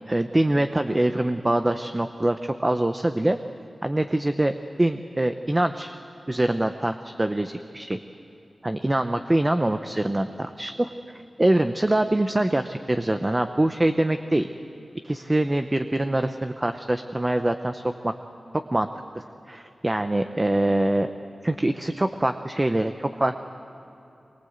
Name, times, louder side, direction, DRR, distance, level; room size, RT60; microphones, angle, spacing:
voice 1, 0.1-3.4 3.8-4.5 4.8-6.0 6.3-8.0 8.6-14.5 15.0-18.1 18.5-18.9 19.1-21.1 21.4-23.4, right 1 dB, 20° right, 8 dB, 0.8 m, -24 dB
24.5 x 22.5 x 8.0 m, 3.0 s
wide cardioid pair, 95°, 0 cm